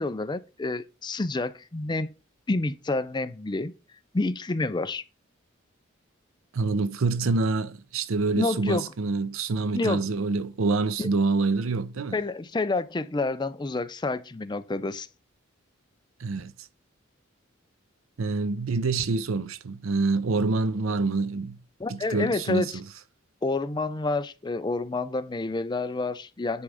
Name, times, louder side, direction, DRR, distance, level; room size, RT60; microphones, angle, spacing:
voice 1, 0.0-2.1 2.5-3.7 4.1-5.0 8.4-8.8 9.7-10.0 11.0-11.1 12.1-15.1 21.8-22.7 23.4-26.6, left 3 dB, 20° left, 0.5 m, -28 dB
voice 2, 6.5-12.2 16.2-16.5 18.2-21.6 21.9-22.8, right 3 dB, 90° right, 0.6 m, -26 dB
10.0 x 3.8 x 4.8 m
head